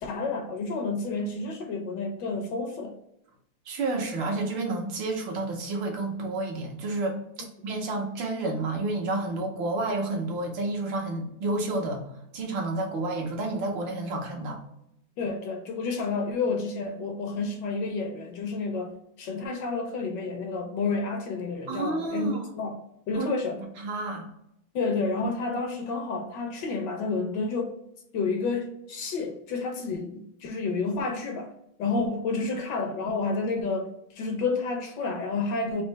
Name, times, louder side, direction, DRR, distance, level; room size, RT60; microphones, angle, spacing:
voice 1, 0.0-3.0 15.2-18.9 19.2-22.8 23.1-23.6 24.7-27.7 28.1-31.5 31.8-35.8, left 3 dB, 70° left, 4 dB, 1.2 m, -30 dB
voice 2, 3.7-7.2 7.6-12.0 12.3-14.6 21.7-22.5 23.1-23.3 23.8-24.3, right 2 dB, 75° right, 1 dB, 1.6 m, -30 dB
4.3 x 2.7 x 3.1 m, 0.78 s
omnidirectional pair, 2.2 m